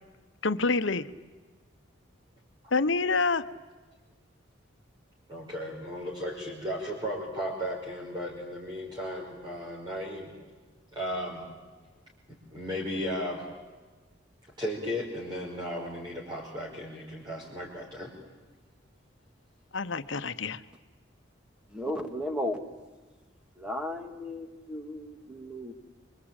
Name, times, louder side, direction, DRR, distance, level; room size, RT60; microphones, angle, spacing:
voice 1, 0.4-1.1 2.7-3.4 19.7-20.6, left 3 dB, 70° left, 1.0 m, -27 dB
voice 2, 5.3-10.3 10.9-11.4 12.3-13.4 14.6-18.1, equal, 20° right, 5.1 m, -35 dB
voice 3, 21.7-22.7 23.6-25.7, left 1 dB, 5° right, 2.0 m, -35 dB
26.5 x 25.0 x 9.0 m
head